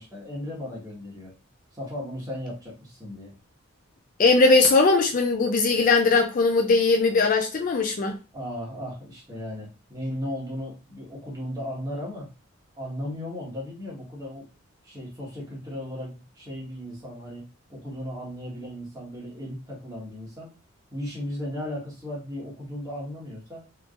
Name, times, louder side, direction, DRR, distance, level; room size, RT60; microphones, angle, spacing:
voice 1, 0.0-1.3 1.7-3.3 8.3-12.3 12.7-14.4 14.8-17.4 17.7-20.5 20.9-23.6, equal, 15° right, 1.4 m, -36 dB
voice 2, 4.2-8.1, left 3 dB, 40° left, 0.4 m, -20 dB
3.3 x 3.3 x 2.4 m
head